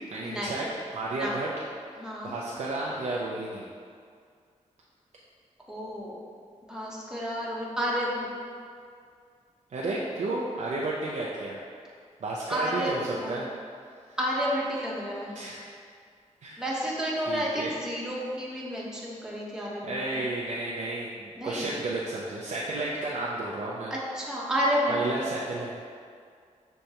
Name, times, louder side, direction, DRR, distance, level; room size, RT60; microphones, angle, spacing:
voice 1, 0.0-1.5 2.2-3.7 9.7-11.6 12.2-13.5 14.1-14.2 15.3-15.6 16.4-16.9 17.3-17.7 19.8-23.9 24.9-25.8, right 2 dB, 65° right, -5 dB, 0.5 m, -32 dB
voice 2, 2.0-2.3 5.7-6.2 6.7-8.3 12.5-13.3 14.2-15.4 16.6-20.3 21.4-21.7 23.9-25.0, equal, 5° right, -6 dB, 1.0 m, -30 dB
6.3 x 2.2 x 2.8 m, 2.2 s
cardioid pair, 55°, 13 cm